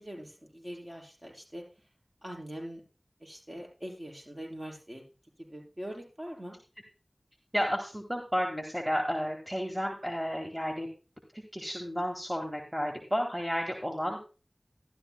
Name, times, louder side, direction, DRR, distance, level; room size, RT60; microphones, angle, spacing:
voice 1, 0.0-1.6 2.2-2.8 3.2-5.0 5.5-6.6, equal, 30° right, -1 dB, 5.1 m, -42 dB
voice 2, 7.5-10.9 11.5-14.2, equal, 10° right, 2 dB, 1.9 m, -32 dB
13.0 x 11.5 x 2.2 m, 0.34 s
wide cardioid pair, 40°, 0 cm